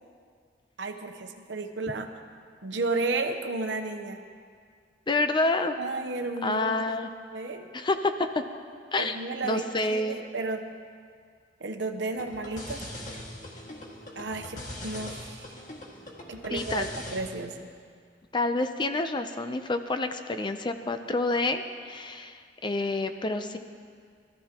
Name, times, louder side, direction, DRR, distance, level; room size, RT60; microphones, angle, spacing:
voice 1, 0.8-2.1 2.6-4.2 5.8-7.0 7.3-7.7 9.0-10.6 11.6-12.8 14.2-15.4 16.3-17.7, right 3 dB, 85° right, 6 dB, 0.9 m, -33 dB
voice 2, 5.1-5.8 6.4-7.1 7.7-8.4 8.9-9.2 9.4-10.2 16.5-16.9 18.3-23.6, left 2 dB, 25° left, 8 dB, 0.6 m, -28 dB
sound 1, 12.1-17.2, left 1 dB, 45° left, 1.9 m, -41 dB
20.5 x 13.5 x 3.0 m, 2.1 s
head